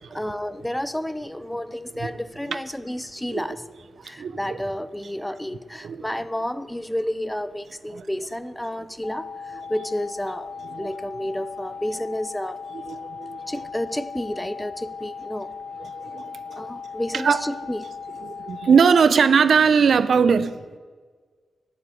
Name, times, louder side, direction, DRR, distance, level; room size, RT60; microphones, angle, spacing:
voice 1, 0.1-3.6 4.0-12.6 13.5-15.5 16.5-17.9, left 1 dB, 5° left, 13 dB, 0.5 m, -31 dB
voice 2, 4.2-4.6 5.8-6.1 7.9-8.0 10.7-10.9 12.7-13.4 15.8-16.6 17.1-17.4 18.2-20.8, right 6 dB, 60° right, 13 dB, 0.7 m, -21 dB
sound 1, 9.0-19.0, left 5 dB, 70° left, 1.5 m, -37 dB
11.0 x 8.0 x 9.3 m, 1.5 s
wide cardioid pair, 145°, 0 cm